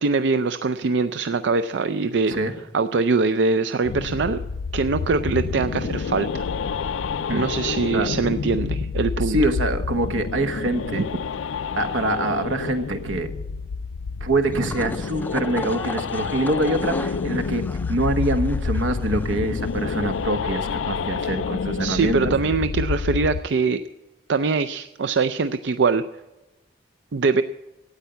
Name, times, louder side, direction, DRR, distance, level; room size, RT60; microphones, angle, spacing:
voice 1, 0.0-2.3 2.7-4.4 4.7-6.4 7.3-9.4 10.9-11.1 21.8-23.8 24.3-26.0 27.1-27.4, right 4 dB, 70° right, 10 dB, 0.4 m, -22 dB
sound 1, 3.8-23.4, left 5 dB, 80° left, 0.4 m, -28 dB
voice 2, 9.2-11.1 11.8-13.3 14.2-17.6 17.9-22.3, right 1 dB, 85° right, 7 dB, 1.3 m, -25 dB
sound 2, 14.4-20.2, left 2 dB, 10° left, 0.4 m, -37 dB
13.0 x 9.1 x 8.1 m, 1.0 s
head